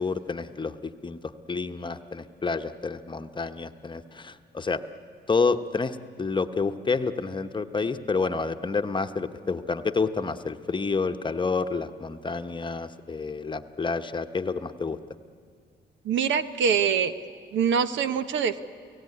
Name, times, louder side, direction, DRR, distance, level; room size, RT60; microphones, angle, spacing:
voice 1, 0.0-4.8 5.3-15.0, left 4 dB, 25° left, 8 dB, 1.0 m, -29 dB
voice 2, 16.0-17.1 17.5-18.6, right 7 dB, 70° right, 11 dB, 1.1 m, -24 dB
29.5 x 17.5 x 9.8 m, 2.1 s
cardioid pair, 90°, 20 cm